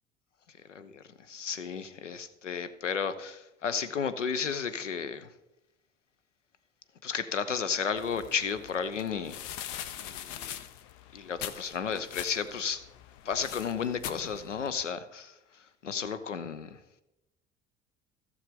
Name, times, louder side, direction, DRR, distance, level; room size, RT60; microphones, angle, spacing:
voice 1, 0.7-5.3 7.0-9.5 10.0-10.5 11.1-12.8 13.3-15.3 15.8-16.8, left 6 dB, 85° left, 12 dB, 0.7 m, -33 dB
sound 1, 8.0-14.8, left 11 dB, 50° left, 0.7 m, -43 dB
15.5 x 6.4 x 3.6 m, 0.90 s
figure-of-eight pair, 60°, 36 cm